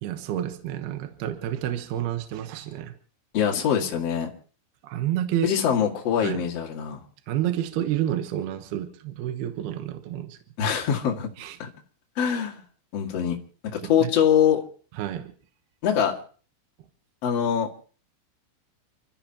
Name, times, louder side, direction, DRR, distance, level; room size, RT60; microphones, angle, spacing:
voice 1, 0.0-2.9 4.8-5.5 6.2-6.4 7.3-10.4 11.4-11.6 14.0-14.1 15.0-15.3, right 12 dB, 70° right, 7 dB, 2.5 m, -29 dB
voice 2, 3.3-4.3 5.4-7.0 10.6-11.3 11.6-11.7 12.2-12.6 12.9-13.4 13.7-14.6 15.8-16.1 17.2-17.7, left 8 dB, 45° left, 0 dB, 2.2 m, -23 dB
30.0 x 13.5 x 2.9 m, 0.42 s
omnidirectional pair, 5.9 m